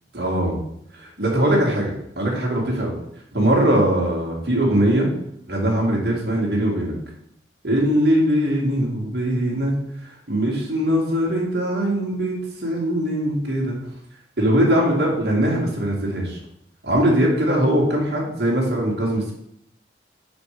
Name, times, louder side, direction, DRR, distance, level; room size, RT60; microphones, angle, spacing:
voice 1, 0.1-0.6 0.9-2.9 3.3-5.1 5.5-6.9 7.6-9.7 10.3-13.8 14.4-16.4 16.8-19.3, right 1 dB, 60° right, -3 dB, 2.1 m, -21 dB
5.6 x 5.0 x 4.9 m, 0.73 s
head